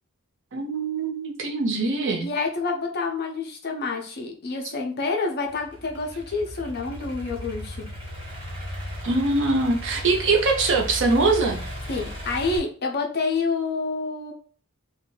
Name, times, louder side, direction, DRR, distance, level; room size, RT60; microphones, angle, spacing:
voice 1, 0.5-2.3 9.0-11.6, right 3 dB, 55° right, 3 dB, 0.6 m, -22 dB
voice 2, 2.2-7.8 11.9-14.3, left 4 dB, 45° left, 2 dB, 0.5 m, -28 dB
Idling / Accelerating revving vroom, 5.5-12.6, equal, 25° right, 1.0 m, -36 dB
2.6 x 2.2 x 3.8 m, 0.40 s
head